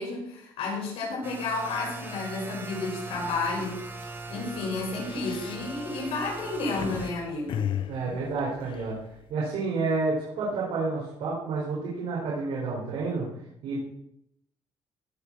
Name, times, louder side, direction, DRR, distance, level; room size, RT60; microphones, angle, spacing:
voice 1, 0.0-3.8 4.3-7.7, left 3 dB, 75° left, -3 dB, 6.4 m, -31 dB
sound 1, 1.2-7.1, right 3 dB, 20° right, 1.7 m, -40 dB
sound 2, 3.3-3.4 3.8-4.0 4.8-7.1 7.5-9.3, left 9 dB, 55° left, 1.1 m, -34 dB
voice 2, 7.9-9.0 9.3-13.3 13.6-13.8, right 3 dB, 85° right, -5 dB, 5.1 m, -29 dB
18.0 x 7.2 x 6.5 m, 0.76 s
cardioid pair, 150°, 10 cm